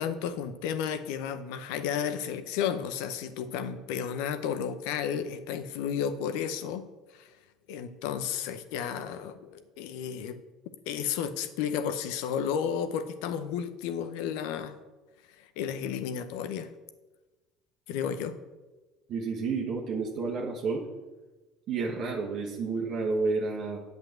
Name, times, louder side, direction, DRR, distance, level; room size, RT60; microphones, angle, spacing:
voice 1, 0.0-6.8 7.1-7.3 7.7-10.4 10.9-14.8 15.4-16.7 17.9-18.4, left 8 dB, 70° left, 10 dB, 0.8 m, -32 dB
voice 2, 19.1-20.8 21.7-23.8, right 4 dB, 55° right, -1 dB, 1.4 m, -30 dB
8.6 x 5.3 x 7.9 m, 1.2 s
hypercardioid pair, 70°, 0 cm